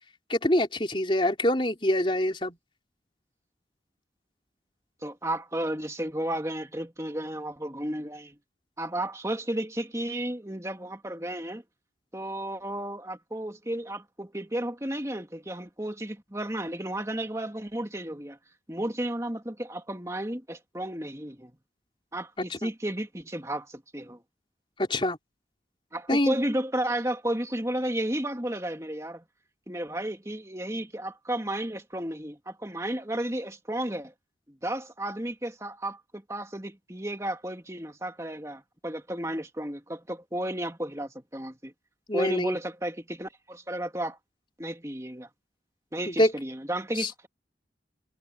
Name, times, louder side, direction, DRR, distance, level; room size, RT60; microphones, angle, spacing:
voice 1, 0.3-2.6 22.5-22.7 24.8-25.2 26.1-26.4 42.1-42.6 46.1-46.3 47.0-47.1, left 1 dB, 30° left, 4.2 m, -25 dB
voice 2, 5.0-8.4 8.8-11.6 12.1-18.4 18.7-21.5 22.1-24.2 25.9-29.2 29.7-34.1 34.5-41.7 42.1-44.2 44.6-45.3 45.9-47.3, right 1 dB, 15° right, 2.6 m, -33 dB
head